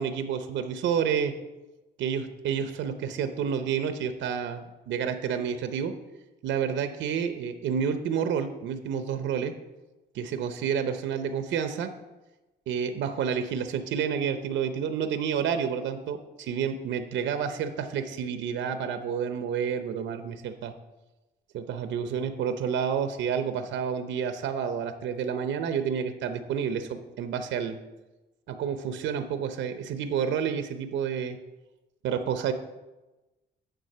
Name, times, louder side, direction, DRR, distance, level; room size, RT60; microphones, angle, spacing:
voice 1, 0.0-1.3 2.0-5.9 6.4-9.5 10.1-11.9 12.7-20.7 21.5-27.8 28.5-31.4 32.0-32.5, right 7 dB, 80° right, 9 dB, 0.7 m, -29 dB
9.3 x 3.8 x 6.6 m, 1.1 s
cardioid pair, 145°, 19 cm